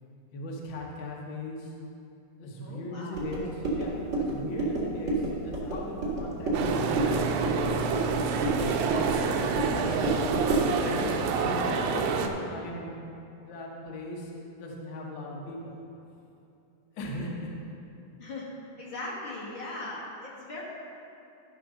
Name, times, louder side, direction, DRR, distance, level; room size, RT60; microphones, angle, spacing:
voice 1, 0.3-1.7 2.4-7.7 8.1-9.1 9.5-10.3 10.8-15.8 16.9-17.5, left 1 dB, 80° left, -2 dB, 1.0 m, -38 dB
voice 2, 2.6-3.2 18.2-18.5 18.8-20.6, left 2 dB, 55° left, -5 dB, 1.3 m, -39 dB
sound 1, 3.1-10.8, right 2 dB, 40° right, 1.7 m, -30 dB
sound 2, 6.5-12.3, right 5 dB, 80° right, 2.4 m, -28 dB
12.5 x 4.4 x 6.3 m, 2.7 s
omnidirectional pair, 4.2 m